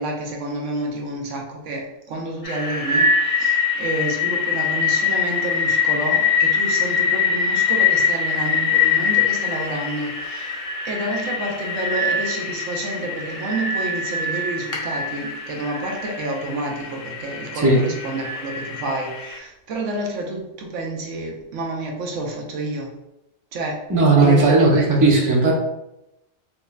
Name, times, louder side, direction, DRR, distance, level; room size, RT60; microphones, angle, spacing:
voice 1, 0.0-22.9 23.5-23.8 24.2-24.9, right 2 dB, 85° right, 0 dB, 1.0 m, -29 dB
sound 1, 2.4-19.4, left 5 dB, 35° left, 0.6 m, -23 dB
voice 2, 23.9-25.5, right 3 dB, 20° right, -3 dB, 0.6 m, -15 dB
4.7 x 2.7 x 2.2 m, 0.87 s
omnidirectional pair, 1.3 m